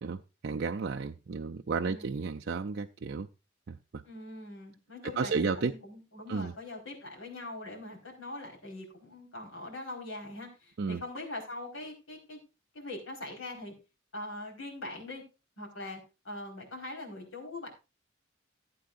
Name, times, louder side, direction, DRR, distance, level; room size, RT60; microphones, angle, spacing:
voice 1, 0.0-3.3 3.7-3.8 5.2-5.7 6.3-6.5 10.8-11.0, right 4 dB, 55° right, 0.5 m, -32 dB
voice 2, 4.0-12.4 12.7-13.7 14.1-15.2 15.6-17.7, left 2 dB, 90° left, 4.5 m, -42 dB
15.5 x 8.6 x 2.5 m
head